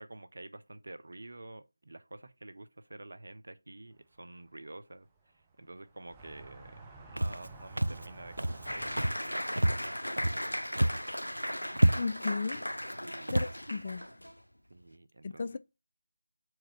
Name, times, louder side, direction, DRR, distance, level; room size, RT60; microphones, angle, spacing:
voice 1, 0.0-10.1 13.0-13.3 14.7-15.6, right 2 dB, 55° right, 0.7 m, -49 dB
sound 1, 4.1-4.5 4.9-9.4, right 3 dB, 10° right, 0.8 m, -51 dB
Walk footsteps, 7.2-7.5 7.8-8.1 8.4-8.7 9.0-9.3 9.6-10.5 10.7-11.1 11.4-11.5 11.7-12.3 12.8-13.0 13.3-13.5, right 1 dB, 75° right, 0.3 m, -28 dB
Applause, 8.7-14.4, equal, 80° left, 0.6 m, -37 dB
voice 2, 11.9-12.7 13.3-14.1 15.2-15.6, left 4 dB, 30° left, 0.4 m, -35 dB
4.8 x 4.3 x 5.9 m
figure-of-eight pair, 160°, 0 cm